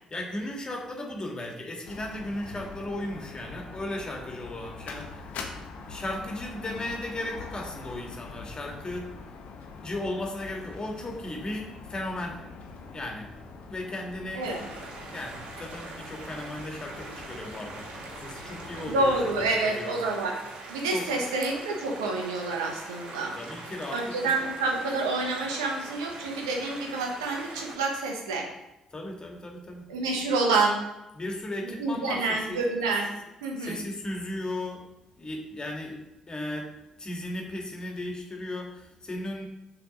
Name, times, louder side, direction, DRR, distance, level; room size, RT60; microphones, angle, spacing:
voice 1, 0.1-5.3 5.5-9.2 9.8-12.4 12.9-13.3 13.7-14.4 15.1-17.9 18.2-19.1 19.6-20.0 20.9-21.2 23.4-24.3 28.9-29.9 31.2-32.6 33.6-34.9 35.2-36.7 37.0-39.5, left 1 dB, 30° left, 1 dB, 1.7 m, -36 dB
sound 1, 1.8-19.6, left 4 dB, 65° left, 0.9 m, -44 dB
sound 2, 14.4-27.8, right 3 dB, 60° right, 1.3 m, -42 dB
voice 2, 18.8-20.4 20.7-23.4 23.9-28.5 29.9-30.8 31.6-33.1 33.4-33.8, right 3 dB, 80° right, 1 dB, 1.0 m, -28 dB
6.7 x 3.6 x 5.2 m, 0.90 s
figure-of-eight pair, 40°, 3 cm